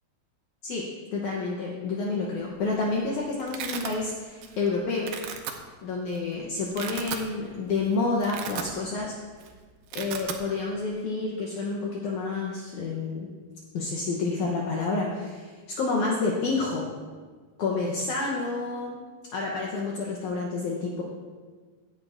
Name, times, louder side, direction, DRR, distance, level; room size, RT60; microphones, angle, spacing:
voice 1, 1.1-5.1 5.8-9.1 9.9-13.3 13.7-16.9 17.6-19.0 19.3-21.0, left 3 dB, 80° left, -2 dB, 1.7 m, -29 dB
Domestic sounds home sounds, 2.5-2.8 3.1-3.9 4.4-4.7 5.0-5.5 6.1-6.2 6.6-7.3 7.7-7.8 8.1-9.1 9.3-9.5 9.7-10.4, right 8 dB, 85° right, 1.9 m, -36 dB
16.5 x 9.0 x 2.6 m, 1.5 s
omnidirectional pair, 4.8 m